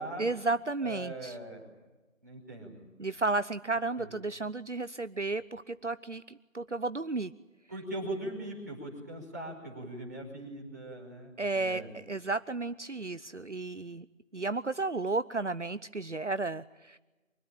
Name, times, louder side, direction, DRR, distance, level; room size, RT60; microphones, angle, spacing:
voice 1, 0.2-1.4 3.0-7.3 11.4-14.1 14.3-17.0, right 3 dB, 60° right, 14 dB, 0.9 m, -33 dB
voice 2, 0.8-1.6 2.2-3.1 4.0-4.1 7.7-11.9, right 1 dB, 15° right, -4 dB, 5.2 m, -40 dB
25.0 x 22.0 x 9.0 m, 1.2 s
figure-of-eight pair, 175°, 40 cm